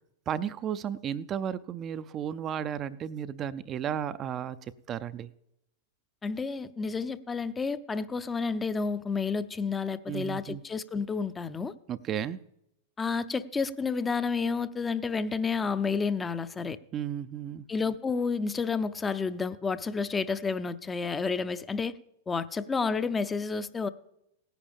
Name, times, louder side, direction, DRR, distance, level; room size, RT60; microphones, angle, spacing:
voice 1, 0.3-5.3 10.1-10.6 11.9-12.4 16.9-17.7, right 9 dB, 30° right, 0.4 m, -34 dB
voice 2, 6.2-11.7 13.0-16.8 17.7-21.9 22.3-23.9, left 5 dB, 15° left, 0.5 m, -30 dB
18.0 x 10.0 x 3.5 m
hypercardioid pair, 100°, 0 cm